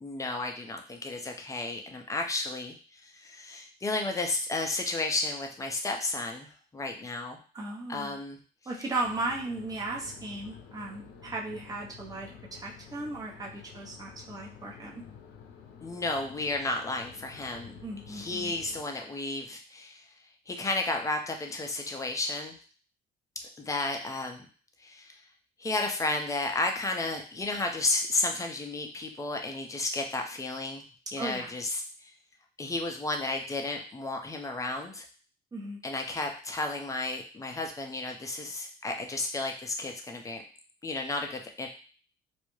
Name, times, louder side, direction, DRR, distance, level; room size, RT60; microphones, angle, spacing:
voice 1, 0.0-7.4 7.9-8.4 15.8-17.8 18.1-20.1 20.5-22.6 23.6-24.5 24.8-25.2 25.6-30.8 31.1-32.1 32.6-35.1 35.8-40.4 40.8-41.7, left 2 dB, 20° left, 3 dB, 0.5 m, -33 dB
voice 2, 7.5-8.1 8.7-15.0 17.8-18.5 31.2-31.5 35.5-35.8, right 2 dB, 20° right, -2 dB, 0.7 m, -36 dB
sound 1, 9.0-18.8, left 6 dB, 80° left, 0.5 m, -50 dB
2.3 x 2.0 x 3.0 m, 0.39 s
cardioid pair, 110°, 17 cm